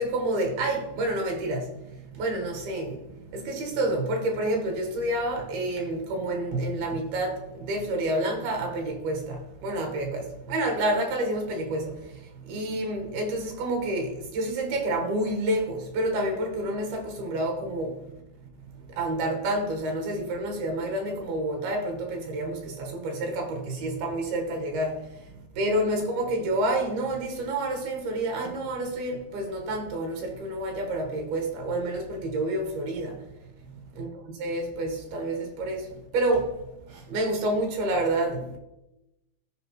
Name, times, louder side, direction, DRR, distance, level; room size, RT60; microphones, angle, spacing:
voice 1, 0.0-18.1 18.7-33.3 33.6-34.1 34.4-38.6, right 1 dB, 70° right, 3.1 m, -29 dB
14.0 x 5.1 x 3.1 m
omnidirectional pair, 4.6 m